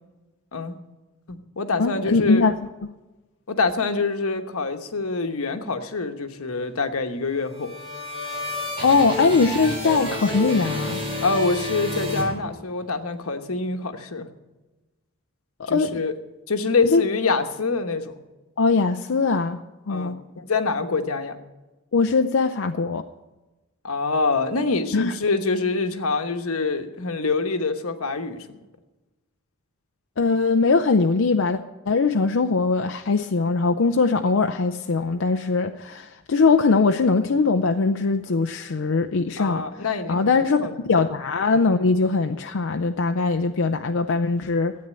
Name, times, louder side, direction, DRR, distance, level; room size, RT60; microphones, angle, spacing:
voice 1, 1.3-2.4 3.5-7.7 11.2-14.3 15.7-16.1 16.5-18.2 19.9-21.4 23.8-28.4 39.4-40.3 40.6-40.7, left 3 dB, 85° left, 7 dB, 1.1 m, -25 dB
voice 2, 1.8-2.5 8.8-11.0 15.6-16.0 16.8-17.0 18.6-20.2 21.9-23.0 24.9-25.1 30.2-31.6 31.9-44.8, left 4 dB, 65° left, 6 dB, 0.5 m, -21 dB
sound 1, 7.3-12.9, left 1 dB, 25° right, 4.1 m, -30 dB
13.0 x 8.8 x 7.6 m, 1.1 s
head